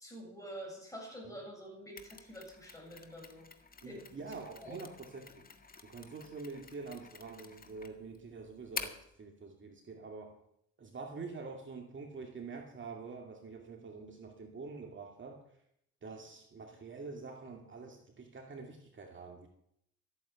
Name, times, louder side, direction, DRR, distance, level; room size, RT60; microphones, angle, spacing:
voice 1, 0.0-3.5 3.8-4.3 4.6-4.8, equal, 10° left, 0 dB, 7.5 m, -47 dB
Mechanisms, 2.0-9.1, left 5 dB, 30° left, 1.6 m, -48 dB
voice 2, 3.8-5.5 5.8-10.4 10.8-15.4 16.0-19.5, right 4 dB, 40° right, 2 dB, 2.4 m, -46 dB
14.0 x 9.0 x 8.1 m, 0.74 s
cardioid pair, 90°, 30 cm